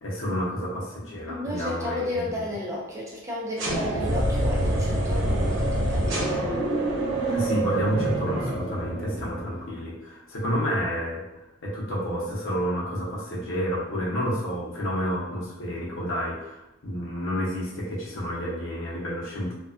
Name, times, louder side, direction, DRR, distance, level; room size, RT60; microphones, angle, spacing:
voice 1, 0.0-2.2 7.3-19.5, equal, 80° left, -4 dB, 0.8 m, -30 dB
voice 2, 1.3-6.4, left 1 dB, 15° right, -5 dB, 0.6 m, -33 dB
sound 1, 3.6-9.5, right 1 dB, 75° right, 0.8 m, -26 dB
2.3 x 2.3 x 2.4 m, 0.93 s
head